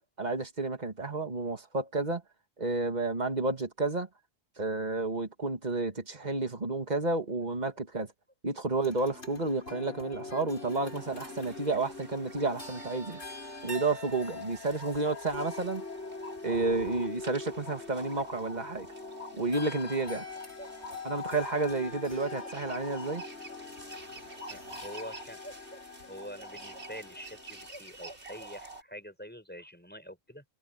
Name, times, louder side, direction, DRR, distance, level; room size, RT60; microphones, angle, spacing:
voice 1, 0.0-2.2 2.6-4.1 4.6-8.1 8.4-13.2 13.6-15.8 16.4-18.9 19.3-20.3 21.0-23.2, right 3 dB, 40° right, 2.2 m, -31 dB
sound 1, 8.8-27.7, left 3 dB, 80° left, 8.3 m, -43 dB
sound 2, 10.9-28.8, right 1 dB, 80° right, 3.6 m, -47 dB
voice 2, 20.6-21.0 22.8-22.9 24.5-30.4, equal, 10° left, 6.8 m, -46 dB
omnidirectional pair, 1.1 m